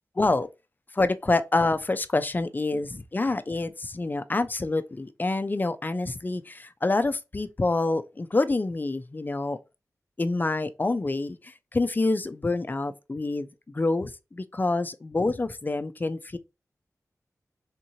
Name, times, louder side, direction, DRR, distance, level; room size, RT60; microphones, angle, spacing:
voice 1, 0.2-0.5 0.9-9.6 10.2-13.5 13.7-16.4, left 2 dB, 30° left, 0.4 m, -27 dB
3.6 x 2.8 x 2.7 m
wide cardioid pair, 70°, 6 cm